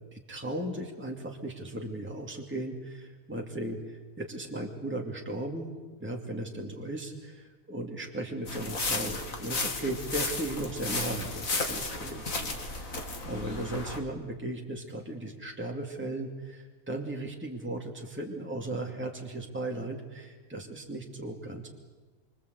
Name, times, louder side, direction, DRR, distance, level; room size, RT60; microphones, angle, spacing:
voice 1, 0.1-5.7 6.0-21.7, right 1 dB, 10° right, 0 dB, 2.5 m, -36 dB
sound 1, 8.5-14.0, left 3 dB, 70° left, 2.9 m, -34 dB
27.0 x 25.5 x 8.3 m, 1.3 s
omnidirectional pair, 1.5 m